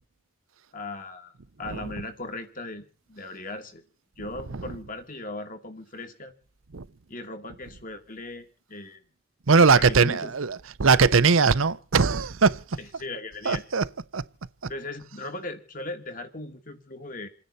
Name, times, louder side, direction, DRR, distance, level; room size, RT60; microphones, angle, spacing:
voice 1, 0.7-1.3 1.6-3.8 4.2-6.3 7.1-9.0 9.8-10.3 12.8-13.6 14.7-17.3, left 2 dB, 40° left, 2.5 m, -38 dB
voice 2, 9.5-12.6 13.5-13.8 14.1-14.2, right 5 dB, 80° right, 0.8 m, -20 dB
29.0 x 10.0 x 4.2 m
head